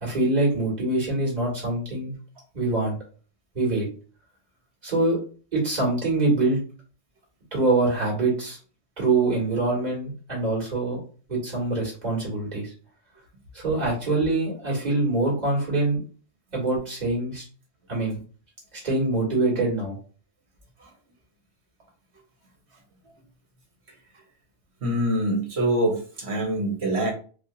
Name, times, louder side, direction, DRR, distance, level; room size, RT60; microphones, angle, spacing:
voice 1, 0.0-2.2 2.5-3.0 3.5-3.9 4.8-5.2 5.5-6.6 7.5-8.6 9.0-11.0 11.3-12.7 13.5-16.0 16.5-17.4 17.9-18.2 18.8-20.0, right 2 dB, 35° right, -5 dB, 2.0 m, -24 dB
voice 2, 24.8-27.1, right 1 dB, 60° right, 1 dB, 1.4 m, -25 dB
4.8 x 2.3 x 2.6 m, 0.38 s
omnidirectional pair, 1.3 m